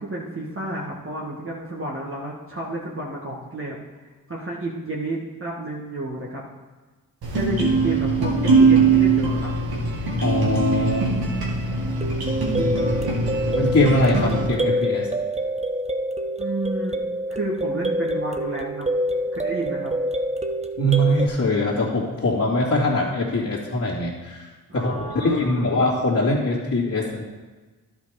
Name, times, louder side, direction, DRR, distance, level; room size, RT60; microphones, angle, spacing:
voice 1, 0.0-6.4 7.3-9.5 16.4-17.0 17.3-18.9 19.3-19.9 24.7-25.8, right 2 dB, 35° right, -4 dB, 1.7 m, -31 dB
sound 1, 7.2-14.5, right 4 dB, 80° right, 1.9 m, -21 dB
voice 2, 10.2-11.1 13.4-15.1 20.8-24.5 24.7-27.2, left 1 dB, 50° left, -8 dB, 2.2 m, -22 dB
sound 2, 12.0-21.3, right 1 dB, 20° right, 0.8 m, -26 dB
11.5 x 5.2 x 4.9 m, 1.3 s
supercardioid pair, 45°, 37 cm